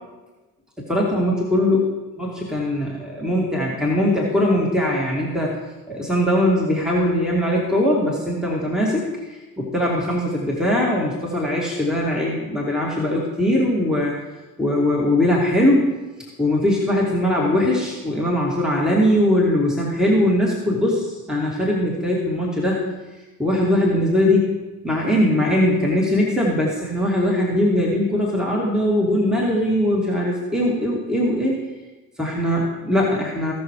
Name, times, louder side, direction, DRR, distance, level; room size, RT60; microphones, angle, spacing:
voice 1, 0.9-1.8 2.2-5.5 5.9-14.1 14.6-15.9 16.4-22.8 23.4-24.5 24.8-31.6 32.2-33.5, left 1 dB, ahead, -3 dB, 2.4 m, -20 dB
18.5 x 6.3 x 3.2 m, 1.1 s
figure-of-eight pair, 55°, 46 cm